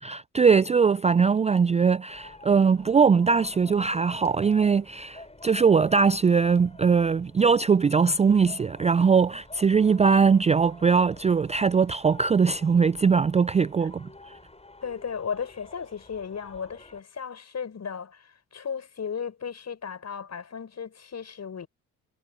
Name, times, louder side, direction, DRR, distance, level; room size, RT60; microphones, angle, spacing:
voice 1, 0.0-14.1, right 5 dB, 20° right, 0.4 m, -21 dB
sound 1, 2.1-17.0, left 2 dB, 15° left, 7.5 m, -49 dB
voice 2, 14.8-21.7, left 6 dB, 45° left, 7.1 m, -35 dB
hypercardioid pair, 55°, 38 cm